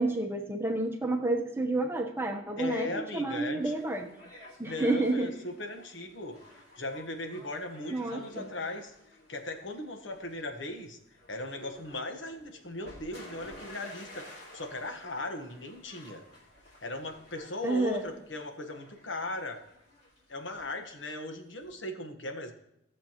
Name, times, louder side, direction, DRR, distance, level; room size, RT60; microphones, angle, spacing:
voice 1, 0.0-4.1 4.6-5.3 7.9-8.5 17.6-18.0, right 2 dB, 10° right, 3 dB, 0.8 m, -30 dB
voice 2, 2.6-3.7 4.6-11.0 11.3-16.2 16.8-19.6 20.3-22.5, left 2 dB, 70° left, 4 dB, 1.3 m, -38 dB
sound 1, 3.6-21.7, left 1 dB, 50° left, 3.5 m, -52 dB
17.0 x 6.7 x 3.0 m, 0.81 s
head